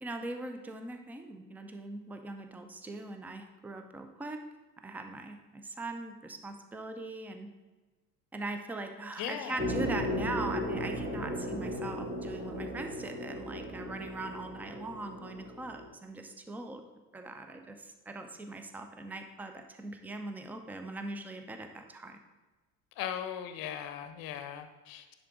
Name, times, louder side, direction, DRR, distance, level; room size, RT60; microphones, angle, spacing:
voice 1, 0.0-4.4 4.8-7.5 8.3-16.8 17.1-22.2, right 2 dB, 5° right, 6 dB, 0.4 m, -41 dB
voice 2, 9.2-9.6 23.0-25.1, left 9 dB, 45° left, 9 dB, 0.8 m, -38 dB
sound 1, 9.6-15.9, equal, 20° right, 1.5 m, -36 dB
10.0 x 3.8 x 3.6 m, 1.2 s
figure-of-eight pair, 65°, 47 cm